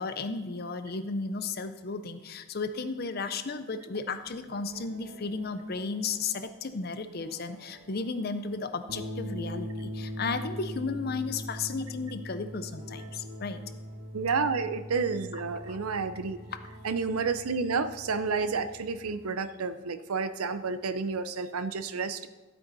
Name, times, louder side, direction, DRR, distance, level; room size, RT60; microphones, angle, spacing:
voice 1, 0.0-13.6 15.7-15.8, left 4 dB, 45° left, 10 dB, 0.6 m, -34 dB
sound 1, 4.3-19.2, equal, 45° right, 1.3 m, -42 dB
voice 2, 14.1-16.4 16.8-22.3, right 4 dB, 90° right, 12 dB, 0.6 m, -30 dB
12.5 x 8.2 x 4.0 m, 1.2 s
head